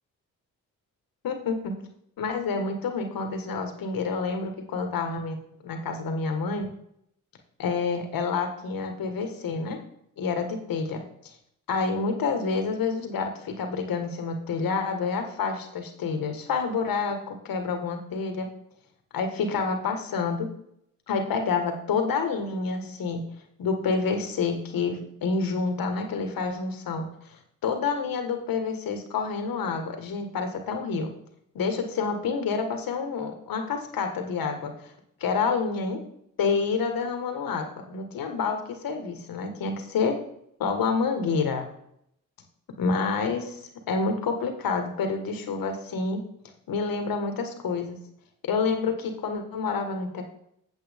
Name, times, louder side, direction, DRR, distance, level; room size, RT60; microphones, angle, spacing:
voice 1, 1.2-1.7 2.2-5.4 5.6-6.7 7.6-9.8 10.2-11.4 11.7-18.5 19.1-20.5 21.1-23.2 23.6-31.1 31.6-34.9 35.2-36.0 36.4-40.2 40.6-41.6 42.8-46.2 46.7-48.0 48.5-50.2, left 4 dB, 70° left, 5 dB, 1.6 m, -28 dB
8.5 x 7.7 x 3.6 m, 0.73 s
supercardioid pair, 55°, 36 cm